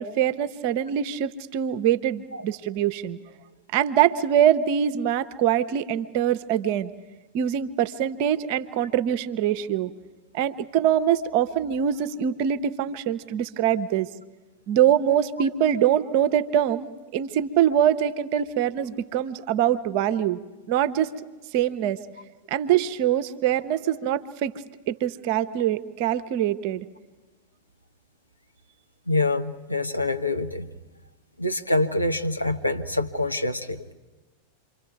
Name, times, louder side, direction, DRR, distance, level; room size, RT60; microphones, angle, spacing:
voice 1, 0.0-3.2 3.7-6.9 7.3-9.9 10.3-14.1 14.7-16.9 17.1-20.4 20.7-21.1 21.5-22.0 22.5-24.5 24.9-26.9, right 10 dB, 45° right, 11 dB, 0.8 m, -23 dB
voice 2, 29.1-30.7 31.4-33.9, left 2 dB, 85° left, 6 dB, 0.9 m, -26 dB
27.5 x 24.0 x 4.7 m, 1.2 s
figure-of-eight pair, 90°, 0 cm